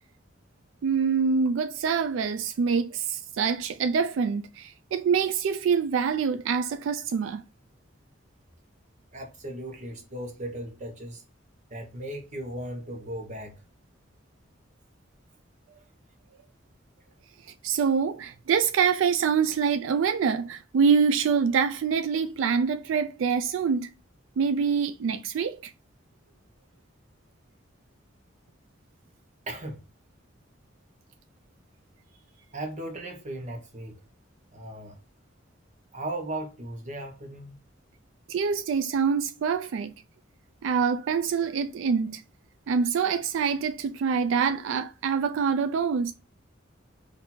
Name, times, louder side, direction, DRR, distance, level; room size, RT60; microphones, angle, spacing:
voice 1, 0.8-7.4 17.6-23.9 24.4-25.7 38.3-39.9 40.6-42.2 42.7-46.1, right 6 dB, 75° right, 0.3 m, -25 dB
voice 2, 9.1-11.2 11.7-13.6 29.5-29.8 32.1-32.2 32.5-34.0 34.5-35.0 35.9-37.6, right 1 dB, 35° right, 0.9 m, -37 dB
4.3 x 2.6 x 4.1 m
head